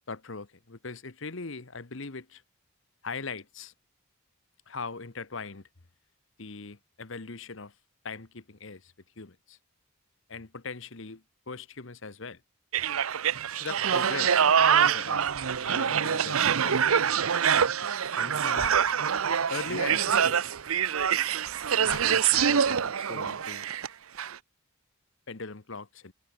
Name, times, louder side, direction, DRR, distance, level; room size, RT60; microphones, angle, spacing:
voice 1, 0.1-2.4 3.0-3.7 4.7-5.7 6.4-7.7 8.0-9.6 10.3-12.4 13.5-14.5 14.8-15.4 15.6-16.8 18.2-18.8 19.5-20.4 21.8-23.7 25.3-26.1, left 4 dB, 60° left, 1.2 m, -40 dB
sound 1, 12.7-23.9 24.2-24.4, right 7 dB, 80° right, 0.7 m, -25 dB
head